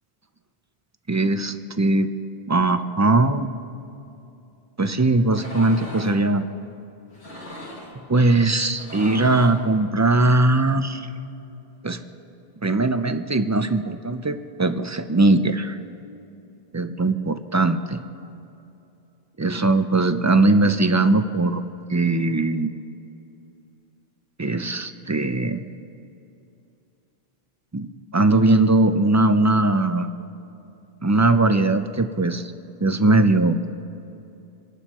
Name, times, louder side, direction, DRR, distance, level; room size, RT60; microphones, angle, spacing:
voice 1, 1.1-2.1 2.5-3.5 4.8-6.5 8.1-11.1 11.8-12.0 12.6-15.8 16.7-18.0 19.4-21.6 21.9-22.7 24.4-25.6 27.7-27.9 28.1-30.1 31.0-32.5 32.8-33.6, right 2 dB, 25° right, 9 dB, 0.4 m, -20 dB
sound 1, 5.3-6.2 7.1-8.0 8.6-9.7, left 1 dB, 90° left, 3.3 m, -37 dB
27.5 x 11.5 x 3.0 m, 2.7 s
omnidirectional pair, 1.1 m